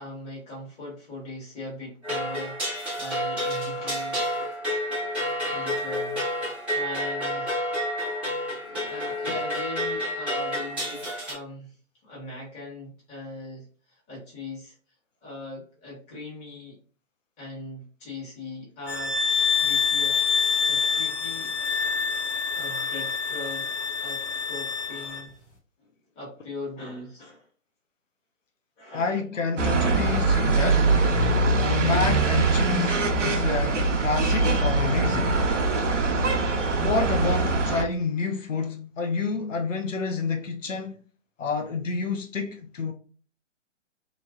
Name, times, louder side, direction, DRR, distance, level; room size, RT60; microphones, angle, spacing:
voice 1, 0.0-4.4 5.5-6.2 6.7-7.6 8.6-11.7 12.0-14.7 15.2-16.8 17.4-19.2 19.6-21.5 22.6-23.7 24.0-25.3 25.8-25.9 26.1-27.5 28.8-29.2 30.7-30.8, left 2 dB, 15° left, 1.2 m, -40 dB
sound 1, 2.0-11.3, equal, 5° right, 0.5 m, -29 dB
sound 2, 18.8-25.3, left 5 dB, 65° left, 1.2 m, -26 dB
voice 2, 28.9-30.8 31.5-35.4 36.8-41.0 41.4-42.9, left 4 dB, 85° left, 0.6 m, -29 dB
sound 3, 29.6-37.8, right 3 dB, 70° right, 0.7 m, -23 dB
3.1 x 2.5 x 2.4 m
figure-of-eight pair, 125°, 37 cm